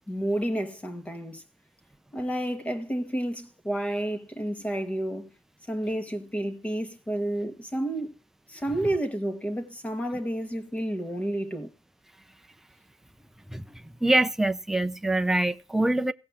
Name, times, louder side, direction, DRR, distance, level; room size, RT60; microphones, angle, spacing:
voice 1, 0.1-1.4 2.1-5.3 5.7-8.1 8.5-11.7, right 1 dB, 15° left, 1.7 m, -30 dB
voice 2, 13.5-16.1, right 2 dB, 5° right, 0.7 m, -25 dB
16.5 x 5.6 x 7.2 m
cardioid pair, 110°, 10 cm